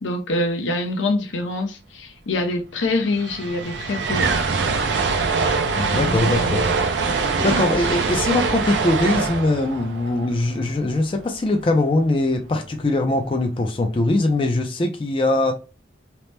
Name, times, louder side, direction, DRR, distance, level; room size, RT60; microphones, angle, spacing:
voice 1, 0.0-4.4 5.8-6.9, left 2 dB, 90° left, 0.5 m, -25 dB
sound 1, 2.6-2.7 2.9-11.1, right 4 dB, 70° right, 0.4 m, -23 dB
voice 2, 5.8-6.6 7.4-15.5, left 2 dB, 30° left, 0.3 m, -21 dB
2.9 x 2.0 x 3.2 m
head